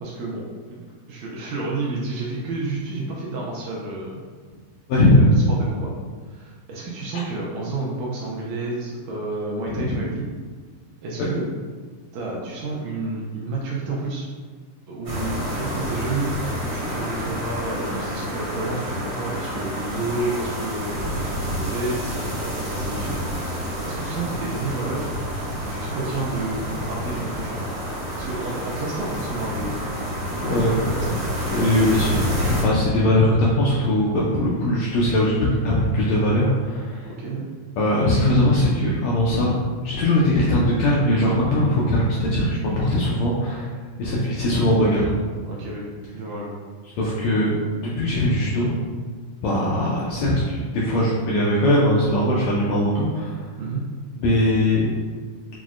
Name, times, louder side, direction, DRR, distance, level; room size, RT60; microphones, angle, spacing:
voice 1, 0.0-4.2 5.0-5.9 6.3-10.3 11.0-11.4 12.1-14.3 14.9-16.3 16.7-23.2 23.8-25.1 25.6-27.6 28.2-29.8 30.5-31.1 37.0-37.5 45.5-45.8 46.1-46.6 53.6-53.8, right 2 dB, 80° right, -4 dB, 1.7 m, -30 dB
voice 2, 4.9-5.4 7.1-7.2 9.7-9.9 11.2-11.3 30.4-30.7 31.5-35.4 35.6-37.1 37.8-39.5 39.8-43.7 44.0-45.1 47.0-47.5 48.0-48.7 49.4-53.4 54.2-54.9, left 1 dB, 80° left, -6 dB, 1.6 m, -20 dB
sound 1, 15.0-32.6, equal, 45° right, 1.0 m, -28 dB
6.0 x 2.1 x 2.4 m, 1.5 s
omnidirectional pair, 3.6 m